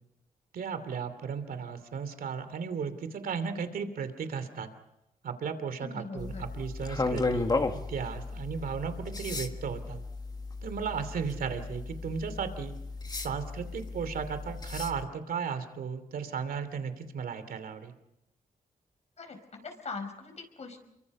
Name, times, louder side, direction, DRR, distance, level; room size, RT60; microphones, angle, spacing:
voice 1, 0.5-4.7 5.2-6.3 6.5-7.5 7.9-10.0 10.6-12.7 13.1-17.9, right 6 dB, 85° right, 10 dB, 2.8 m, -35 dB
voice 2, 5.8-6.4 19.2-20.8, left 4 dB, 50° left, 5 dB, 5.0 m, -41 dB
sound 1, 6.2-15.0, left 3 dB, 25° left, 1.8 m, -35 dB
29.0 x 24.0 x 5.4 m, 0.87 s
wide cardioid pair, 130°, 15 cm